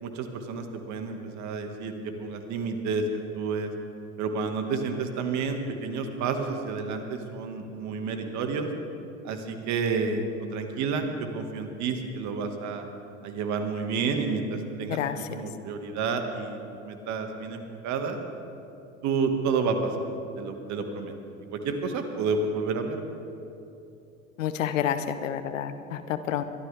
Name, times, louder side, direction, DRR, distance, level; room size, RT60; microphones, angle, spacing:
voice 1, 0.0-3.7 4.2-8.7 9.2-10.3 10.5-12.9 13.2-15.0 15.3-16.6 16.8-18.2 19.0-20.1 20.4-21.1 21.5-23.0, right 4 dB, 45° right, 5 dB, 1.8 m, -30 dB
voice 2, 24.4-26.4, left 9 dB, 70° left, 11 dB, 1.0 m, -29 dB
22.5 x 13.0 x 3.5 m, 2.7 s
hypercardioid pair, 80°, 39 cm